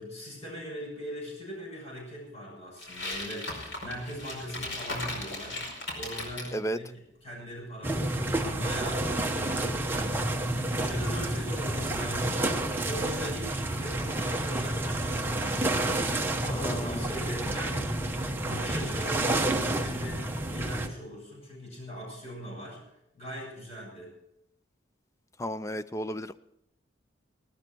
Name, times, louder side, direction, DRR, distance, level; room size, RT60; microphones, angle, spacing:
voice 1, 0.0-5.6 5.9-6.9 7.2-22.8 23.1-24.1, equal, 35° left, -2 dB, 7.5 m, -40 dB
sound 1, 2.8-6.5, left 2 dB, 80° left, 5.0 m, -37 dB
sound 2, 7.8-20.9, right 1 dB, 10° right, 1.1 m, -29 dB
voice 2, 16.5-17.1 25.4-26.3, equal, 15° left, 13 dB, 0.5 m, -33 dB
19.0 x 13.0 x 4.6 m, 0.80 s
head